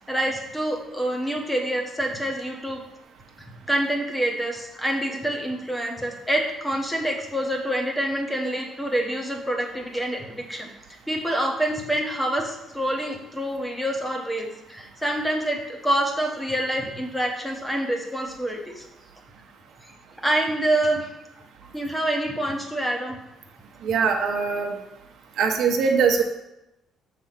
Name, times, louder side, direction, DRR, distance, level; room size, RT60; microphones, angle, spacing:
voice 1, 0.1-2.8 3.4-10.7 11.1-18.9 20.2-21.1 21.7-23.2, right 1 dB, 5° left, 1 dB, 1.1 m, -26 dB
voice 2, 23.8-24.7 25.4-26.2, right 5 dB, 65° right, 2 dB, 0.9 m, -21 dB
7.0 x 3.4 x 5.8 m, 0.89 s
cardioid pair, 135°, 0 cm